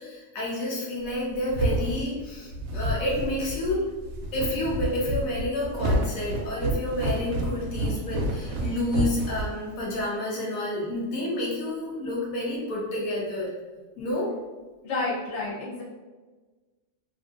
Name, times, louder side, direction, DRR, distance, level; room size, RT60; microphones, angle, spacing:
voice 1, 0.0-3.9 4.3-13.5 14.0-14.3, left 1 dB, 85° left, -4 dB, 1.2 m, -29 dB
sound 1, 1.1-10.0, right 1 dB, 85° right, 1.0 m, -29 dB
voice 2, 14.8-15.8, left 3 dB, 60° left, -6 dB, 1.1 m, -30 dB
2.9 x 2.6 x 2.4 m, 1.3 s
omnidirectional pair, 1.4 m